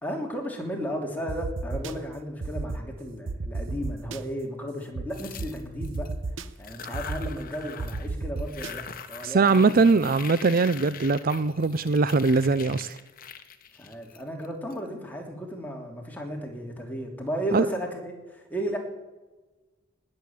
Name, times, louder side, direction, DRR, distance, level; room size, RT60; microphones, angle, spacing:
voice 1, 0.0-6.1 6.6-9.7 13.8-18.8, equal, 10° left, 1 dB, 3.2 m, -34 dB
sound 1, 1.3-1.9 2.4-2.8 3.3-4.2 4.9-5.0 5.4-5.5 5.8-6.4 6.9-7.3 7.8-8.7, right 3 dB, 75° right, 0.9 m, -32 dB
sound 2, 5.1-6.1 6.6-8.1 8.4-14.7, left 7 dB, 45° left, 1.2 m, -42 dB
voice 2, 9.2-13.0 17.5-17.7, right 4 dB, 45° right, 15 dB, 0.5 m, -21 dB
19.0 x 7.8 x 8.7 m, 1.2 s
head